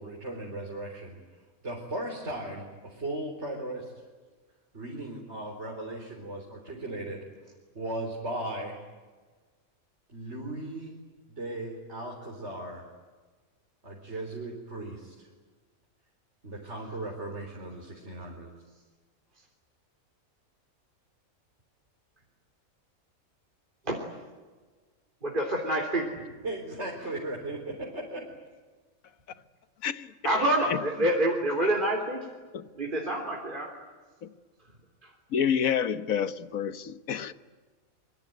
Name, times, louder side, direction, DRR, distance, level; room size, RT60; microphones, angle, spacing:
voice 1, 0.0-3.9 4.7-7.2 7.7-8.8 10.1-10.9 11.3-12.8 13.8-15.3 16.4-18.5 26.4-28.3, right 1 dB, 55° right, 4.5 m, -37 dB
voice 2, 25.2-26.1 30.2-32.2 32.8-33.7, right 1 dB, 35° right, 3.7 m, -27 dB
voice 3, 29.8-30.8 32.5-32.7 34.2-34.3 35.3-37.3, left 8 dB, 75° left, 1.5 m, -29 dB
25.0 x 24.5 x 9.4 m
omnidirectional pair, 1.5 m